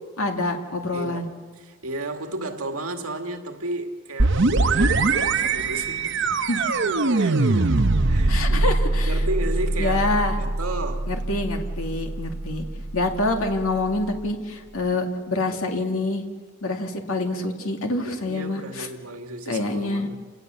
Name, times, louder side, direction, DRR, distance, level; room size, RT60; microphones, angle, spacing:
voice 1, 0.2-1.3 4.4-4.5 6.5-6.6 8.3-9.1 9.8-10.4 11.1-12.7 12.9-16.2 16.6-18.9 19.5-20.1, left 2 dB, 75° left, 2.3 m, -26 dB
voice 2, 0.9-1.3 1.6-7.8 8.1-8.7 9.0-10.1 10.4-11.1 12.5-12.6 18.0-20.2, right 2 dB, 80° right, 2.1 m, -33 dB
sound 1, 4.2-13.8, right 2 dB, 55° right, 0.8 m, -23 dB
29.0 x 18.5 x 6.9 m
head